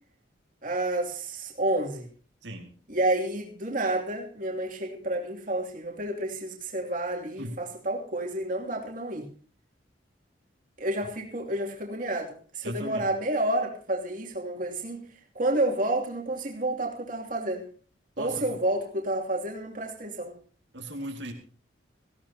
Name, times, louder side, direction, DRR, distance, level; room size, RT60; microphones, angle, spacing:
voice 1, 0.6-2.1 2.9-9.3 10.8-15.1 15.3-17.7 18.2-20.3, right 1 dB, 45° right, -1 dB, 2.8 m, -30 dB
voice 2, 12.6-13.1 18.2-18.5 20.7-21.3, right 1 dB, 85° right, 1 dB, 2.4 m, -37 dB
18.0 x 16.0 x 2.9 m, 0.41 s
head